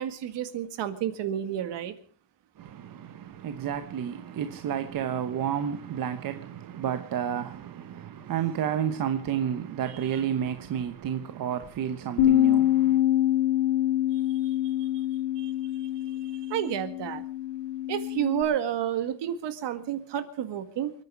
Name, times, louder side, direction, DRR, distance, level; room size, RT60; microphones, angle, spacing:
voice 1, 0.0-1.9 15.4-15.5 16.5-17.2 17.9-20.9, right 10 dB, 60° right, 1.9 m, -30 dB
voice 2, 2.6-13.0, right 9 dB, 45° right, 1.1 m, -31 dB
Bass guitar, 12.2-18.4, left 12 dB, 65° left, 2.9 m, -25 dB
29.0 x 9.7 x 4.7 m
cardioid pair, 160°, 47 cm